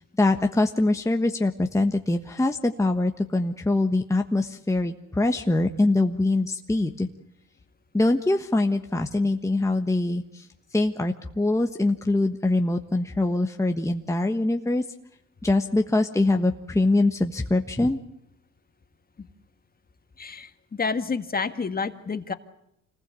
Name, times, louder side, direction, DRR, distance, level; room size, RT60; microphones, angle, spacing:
voice 1, 0.0-7.1 7.9-10.5 10.7-14.8 15.4-18.0, left 2 dB, 10° left, 4 dB, 1.3 m, -23 dB
voice 2, 20.2-22.3, left 4 dB, 30° left, 9 dB, 1.9 m, -29 dB
26.5 x 19.5 x 8.3 m, 0.77 s
cardioid pair, 90°, 30 cm